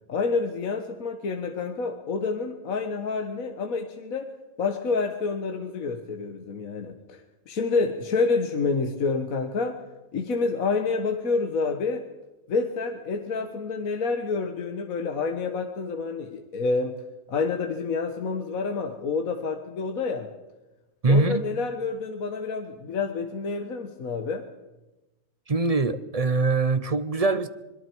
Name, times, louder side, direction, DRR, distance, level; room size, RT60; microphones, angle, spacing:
voice 1, 0.1-4.3 4.6-9.8 10.1-12.0 12.5-16.9 17.3-20.3 21.1-24.4, left 4 dB, 65° left, 1.7 m, -28 dB
voice 2, 21.0-21.4 25.5-27.5, right 3 dB, 35° right, 0.6 m, -23 dB
26.0 x 21.5 x 4.6 m
omnidirectional pair, 1.5 m